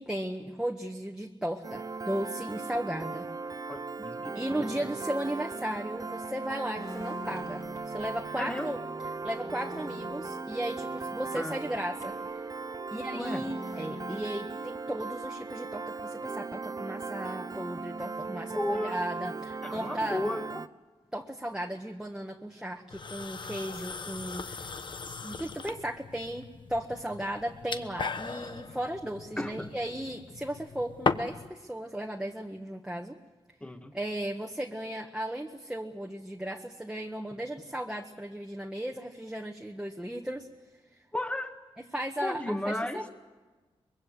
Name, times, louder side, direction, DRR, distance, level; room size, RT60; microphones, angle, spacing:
voice 1, 0.0-3.3 4.3-8.8 9.2-12.4 12.9-20.2 21.1-24.7 25.0-33.2 33.9-40.5 41.9-43.1, right 1 dB, 5° right, 0 dB, 1.5 m, -36 dB
Piano, 1.6-20.7, right 4 dB, 35° right, 0.8 m, -38 dB
voice 2, 3.7-4.6 8.4-8.7 11.3-11.6 13.1-13.5 18.6-19.1 19.6-20.6 29.4-29.7 33.6-33.9 41.1-41.6 42.2-43.0, left 1 dB, 10° left, 7 dB, 1.8 m, -34 dB
sound 1, 6.7-8.4 8.8-8.9 9.2-12.3 13.1-14.2, left 3 dB, 30° left, 3.5 m, -47 dB
sound 2, 22.9-31.5, left 4 dB, 45° left, 1.1 m, -37 dB
24.0 x 22.5 x 8.2 m, 1.3 s
wide cardioid pair, 105°, 11 cm